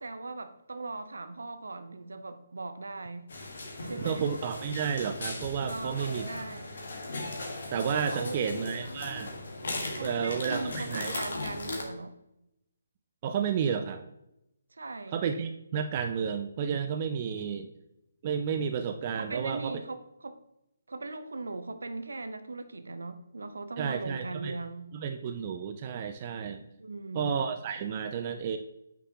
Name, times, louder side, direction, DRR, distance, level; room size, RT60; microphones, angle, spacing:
voice 1, 0.0-3.3 3.8-4.2 5.7-6.7 8.1-8.5 9.9-12.2 14.7-15.2 19.2-20.4 20.9-24.9 26.8-27.4, right 3 dB, 65° right, 10 dB, 0.8 m, -39 dB
sound 1, 3.3-11.8, left 2 dB, 55° left, 1.8 m, -38 dB
voice 2, 4.0-6.3 7.7-9.3 10.0-11.1 13.2-14.0 15.1-17.7 18.2-19.7 23.8-24.6 24.9-26.6 27.1-28.6, right 7 dB, 30° right, 7 dB, 0.5 m, -31 dB
9.2 x 6.0 x 3.0 m, 0.84 s
figure-of-eight pair, 140°, 0 cm